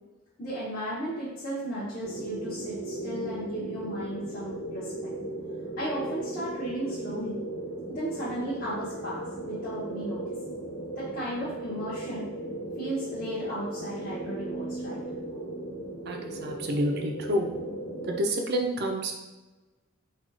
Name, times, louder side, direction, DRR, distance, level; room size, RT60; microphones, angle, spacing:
voice 1, 0.4-5.1 5.8-7.4 7.9-10.6 11.0-12.3 12.8-15.0, right 1 dB, 45° left, -10 dB, 1.1 m, -35 dB
sound 1, 2.0-18.2, right 1 dB, 75° left, 1.5 m, -37 dB
voice 2, 16.1-17.5 18.1-19.1, equal, 55° right, 2 dB, 0.6 m, -28 dB
4.1 x 2.4 x 4.6 m, 1.1 s
head